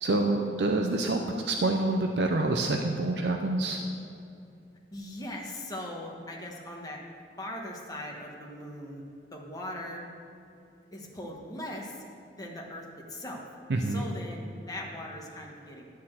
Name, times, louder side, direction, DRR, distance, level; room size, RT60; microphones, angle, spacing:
voice 1, 0.0-1.2 1.5-3.8 13.7-14.1, right 2 dB, 75° right, 3 dB, 0.6 m, -27 dB
voice 2, 4.9-7.0 7.4-9.0 9.3-10.1 10.9-12.0 12.4-13.4 13.8-15.9, left 1 dB, 20° left, -1 dB, 1.2 m, -40 dB
11.5 x 4.3 x 7.7 m, 2.6 s
head